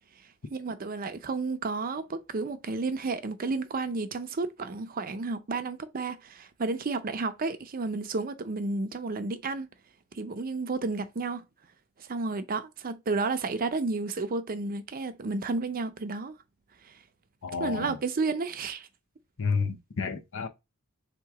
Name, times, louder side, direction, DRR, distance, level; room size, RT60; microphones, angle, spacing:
voice 1, 0.5-9.7 10.1-11.4 12.0-16.3 16.9-17.0 17.5-18.9, right 3 dB, 40° right, 0.5 m, -32 dB
voice 2, 17.4-17.9 19.4-20.5, left 5 dB, 65° left, 0.7 m, -30 dB
3.6 x 2.9 x 4.7 m
head